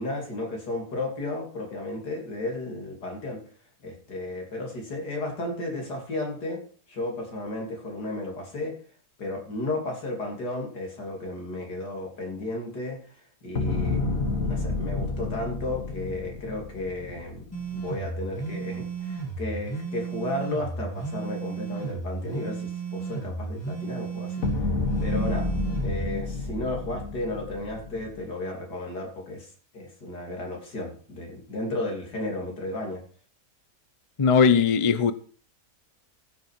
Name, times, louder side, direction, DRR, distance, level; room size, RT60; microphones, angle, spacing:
voice 1, 0.0-3.4 3.8-6.6 6.9-8.8 9.2-13.1 13.4-14.2 14.4-17.5 17.7-24.4 25.0-25.5 25.8-33.0, left 2 dB, 85° left, 1 dB, 3.6 m, -33 dB
sound 1, 13.6-17.8 24.4-28.2, left 3 dB, 55° left, 2.2 m, -30 dB
sound 2, 17.5-26.1, right 4 dB, 10° left, 2.0 m, -34 dB
voice 2, 34.2-35.1, left 6 dB, 35° left, 12 dB, 0.5 m, -19 dB
15.0 x 6.8 x 4.6 m, 0.43 s
omnidirectional pair, 1.7 m